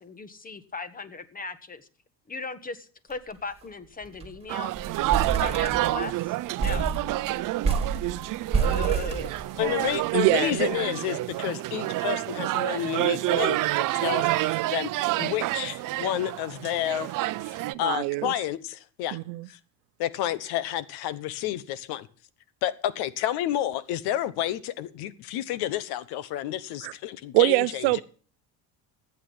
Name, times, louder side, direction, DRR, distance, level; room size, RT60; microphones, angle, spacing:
voice 1, 0.0-1.9 2.3-4.7 5.4-6.9 8.5-9.9 10.3-10.6, left 4 dB, 20° left, 1.5 m, -38 dB
sound 1, 3.1-3.3 3.6-3.7 4.0-4.4 4.8-6.1 6.6-9.9, right 5 dB, 15° right, 3.1 m, -29 dB
sound 2, 4.5-17.7, right 17 dB, 50° right, 0.7 m, -28 dB
voice 2, 9.6-14.9 15.2-17.1 17.4-19.2 19.5-19.6 20.0-22.1 22.6-28.0, left 12 dB, 70° left, 1.2 m, -30 dB
voice 3, 10.1-10.7 17.7-18.3 19.1-19.5 26.8-26.9 27.3-28.0, right 22 dB, 75° right, 0.9 m, -24 dB
14.5 x 8.5 x 5.6 m
supercardioid pair, 100°, 40 cm